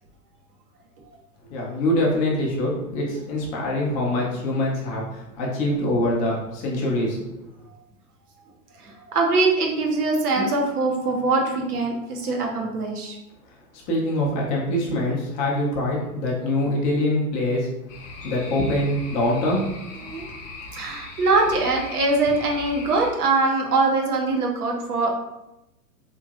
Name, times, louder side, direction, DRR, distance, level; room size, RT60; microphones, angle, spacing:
voice 1, 1.5-7.2 13.9-17.7 18.2-19.6, left 1 dB, 20° left, -3 dB, 0.4 m, -24 dB
voice 2, 8.8-13.2 20.0-20.2 20.7-25.1, right 3 dB, 75° right, 1 dB, 0.9 m, -22 dB
sound 1, 17.9-23.1, left 3 dB, 55° left, 0.7 m, -39 dB
3.0 x 2.5 x 2.3 m, 0.90 s
hypercardioid pair, 120°, 46 cm